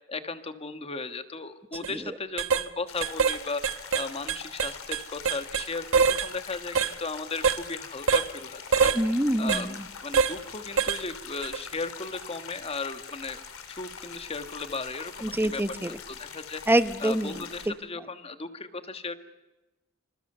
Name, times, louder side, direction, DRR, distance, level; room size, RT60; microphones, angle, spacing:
voice 1, 0.1-8.9 9.4-13.4 13.7-15.6 16.1-16.6 17.0-19.1, left 3 dB, 30° left, 9 dB, 1.5 m, -36 dB
sound 1, 1.7-1.9 2.4-2.7 3.0-3.4 3.6-5.7 5.9-6.3 6.8-6.9 7.4-7.6 8.1-8.3 8.7-9.0 9.5-9.6 10.1-10.4 10.8-11.0 11.4-11.6, right 6 dB, 70° right, 1.1 m, -24 dB
sound 2, 2.9-17.7, left 7 dB, 85° left, 3.1 m, -43 dB
voice 2, 8.9-9.9 15.2-15.9 16.7-17.7, right 1 dB, 10° right, 12 dB, 0.9 m, -26 dB
27.0 x 26.5 x 6.8 m, 1.1 s
head